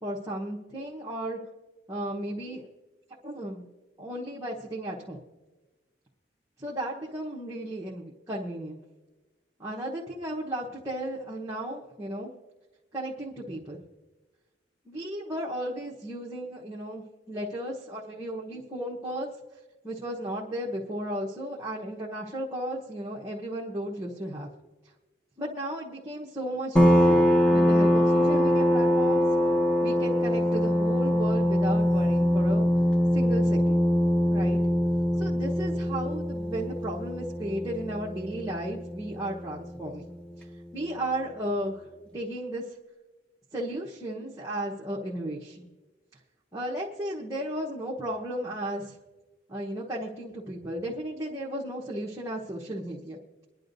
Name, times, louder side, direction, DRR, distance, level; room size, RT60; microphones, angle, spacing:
voice 1, 0.0-1.4 1.9-2.7 3.2-3.7 4.0-5.2 6.6-8.8 9.6-12.3 12.9-13.8 14.8-19.3 19.8-24.5 25.4-29.2 29.8-32.7 33.1-33.9 34.3-34.6 35.2-40.0 40.4-40.5 40.7-41.9 42.1-42.6 43.5-45.7 46.5-48.9 49.5-53.4, right 1 dB, 15° right, -5 dB, 1.0 m, -34 dB
sound 1, 26.8-40.0, equal, 5° left, 0.8 m, -23 dB
23.5 x 10.5 x 2.6 m, 1.2 s
head